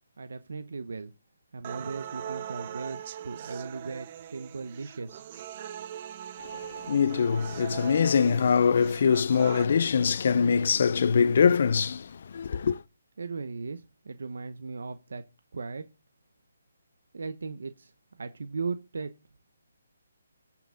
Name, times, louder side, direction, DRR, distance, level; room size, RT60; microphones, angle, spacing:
voice 1, 0.2-1.1 1.5-5.2 13.2-15.2 15.5-15.9 17.1-19.1, right 4 dB, 70° right, 0.9 m, -37 dB
sound 1, 1.6-9.6, right 10 dB, 35° right, 0.5 m, -41 dB
voice 2, 6.4-12.8, left 6 dB, 50° left, 0.5 m, -23 dB
14.0 x 5.9 x 3.8 m
hypercardioid pair, 160°, 0 cm